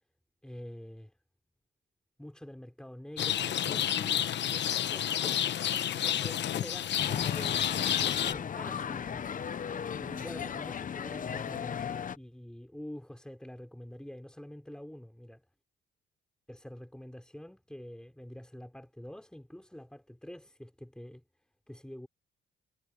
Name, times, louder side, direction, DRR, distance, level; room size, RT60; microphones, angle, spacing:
voice 1, 0.4-1.1 2.2-7.6 7.9-9.3 10.0-15.4 16.5-21.2 21.7-22.1, equal, 5° left, 5.4 m, -46 dB
Rain, 3.2-8.3, left 10 dB, 65° left, 1.1 m, -30 dB
sound 1, 7.0-12.2, left 7 dB, 40° left, 0.8 m, -36 dB
cardioid pair, 90°, 20 cm